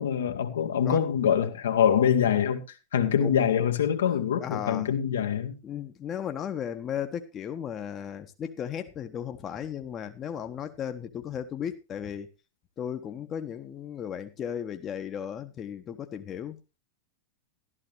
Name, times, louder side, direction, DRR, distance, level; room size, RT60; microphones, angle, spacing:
voice 1, 0.0-2.6 2.9-5.6, left 8 dB, 65° left, 1.8 m, -24 dB
voice 2, 4.4-4.9 5.6-12.3 12.8-16.6, left 9 dB, 25° left, 1.3 m, -35 dB
13.5 x 13.0 x 3.3 m
figure-of-eight pair, 90°, 0 cm